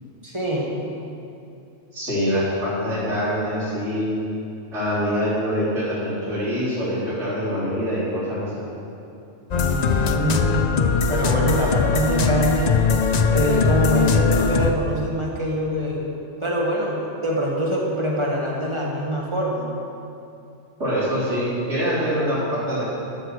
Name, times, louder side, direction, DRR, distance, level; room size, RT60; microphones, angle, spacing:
voice 1, 0.2-0.7 9.5-10.7 11.1-13.0 13.3-16.1 16.4-19.7, equal, 25° right, -4 dB, 1.7 m, -24 dB
voice 2, 1.9-4.1 4.7-8.6 20.8-22.8, equal, 75° right, -13 dB, 3.7 m, -24 dB
sound 1, 9.5-14.7, left 5 dB, 50° left, 0.5 m, -20 dB
14.0 x 6.3 x 6.4 m, 2.7 s
omnidirectional pair, 1.3 m